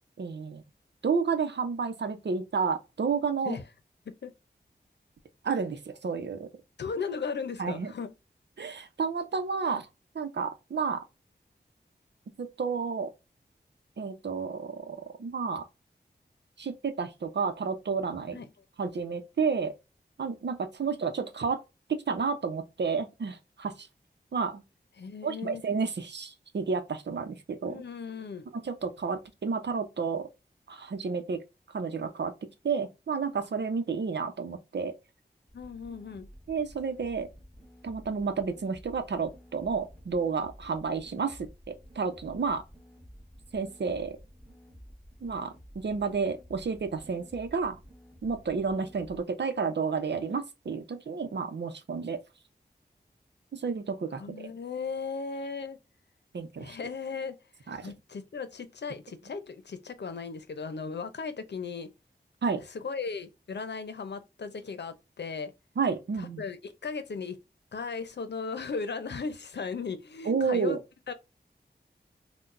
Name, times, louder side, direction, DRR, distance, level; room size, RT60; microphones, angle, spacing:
voice 1, 0.2-0.6 1.0-3.6 5.4-6.5 7.6-7.9 8.6-9.9 10.1-11.0 12.4-13.1 14.0-15.6 16.6-18.4 18.8-19.7 20.2-21.6 21.9-23.9 24.3-24.6 25.2-27.8 28.5-30.3 30.7-31.4 31.7-32.3 32.6-34.9 36.5-37.3 37.8-42.6 43.5-44.2 45.2-47.8 48.2-52.2 53.5-54.5 56.3-56.8 57.7-57.9 62.4-62.6 65.8-66.4 70.3-70.8, right 5 dB, 80° right, 0.8 m, -31 dB
voice 2, 6.8-8.1 18.3-18.5 25.0-25.6 27.6-28.5 35.5-36.3 54.2-55.8 56.6-57.4 57.6-61.9 62.7-65.5 66.2-67.4 67.7-70.8 71.1-71.2, left 5 dB, 80° left, 0.7 m, -36 dB
sound 1, 35.5-49.2, equal, ahead, 1.7 m, -52 dB
5.8 x 2.3 x 2.6 m
wide cardioid pair, 95°, 18 cm